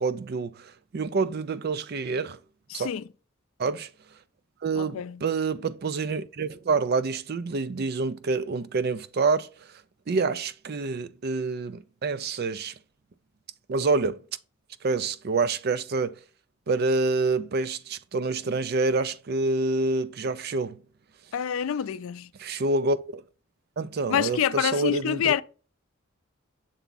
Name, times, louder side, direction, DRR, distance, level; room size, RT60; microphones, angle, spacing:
voice 1, 0.0-2.4 2.7-2.9 3.6-3.9 4.6-9.8 10.1-12.7 13.7-14.2 14.8-16.2 16.7-20.8 22.4-23.2 23.8-25.4, right 3 dB, 50° right, 0.4 m, -27 dB
voice 2, 2.7-3.0 4.8-5.2 21.3-22.3 24.1-25.4, left 8 dB, 75° left, 0.3 m, -27 dB
6.9 x 3.5 x 3.9 m
head